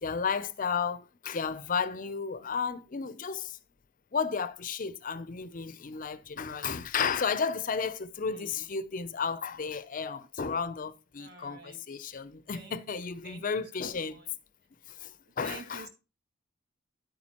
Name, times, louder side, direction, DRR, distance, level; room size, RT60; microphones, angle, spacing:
voice 1, 0.0-3.6 4.1-14.2 14.9-15.9, left 5 dB, 40° left, 0.5 m, -33 dB
voice 2, 8.3-8.6 11.2-11.8 12.5-14.3 15.4-15.9, right 3 dB, 55° right, 1.9 m, -49 dB
10.5 x 8.5 x 2.9 m
head